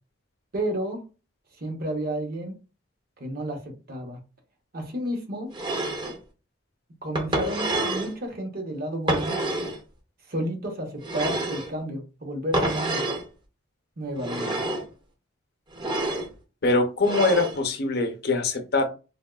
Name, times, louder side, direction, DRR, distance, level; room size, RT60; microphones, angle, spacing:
voice 1, 0.5-1.0 1.6-2.5 3.2-4.2 4.7-5.5 7.0-9.4 10.3-13.0 14.0-14.6, right 1 dB, 50° right, 3 dB, 0.8 m, -31 dB
sound 1, 5.5-6.2 7.2-8.1 9.1-9.8 11.0-11.7 12.5-13.2 14.2-14.9 15.7-16.3 17.0-17.6, right 2 dB, 25° right, 0.6 m, -28 dB
voice 2, 16.6-18.8, left 3 dB, 55° left, 5 dB, 0.6 m, -23 dB
3.4 x 2.3 x 2.3 m, 0.31 s
head